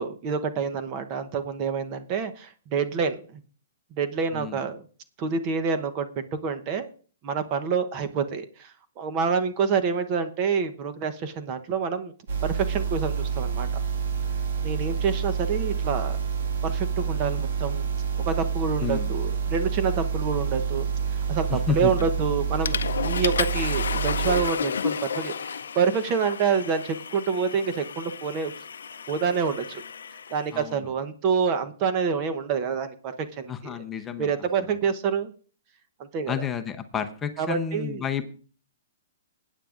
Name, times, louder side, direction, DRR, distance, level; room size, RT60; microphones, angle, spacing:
voice 1, 0.0-3.4 3.9-4.9 5.2-6.9 7.2-12.1 12.4-13.7 14.6-16.2 16.6-17.9 18.3-20.9 21.3-28.5 29.1-29.8 30.3-33.8 34.2-35.3 36.0-36.4 37.4-38.0, right 6 dB, 30° right, 9 dB, 0.9 m, -27 dB
sound 1, 12.3-24.4, right 6 dB, 65° right, 1.8 m, -28 dB
voice 2, 21.5-21.9 30.5-30.8 33.5-34.3 34.6-34.7 36.3-38.3, left 7 dB, 15° left, 6 dB, 0.7 m, -30 dB
Water / Toilet flush, 22.0-22.2 22.7-30.5, left 6 dB, 90° left, 0.5 m, -32 dB
20.5 x 9.2 x 2.5 m, 0.41 s
hypercardioid pair, 155°, 0 cm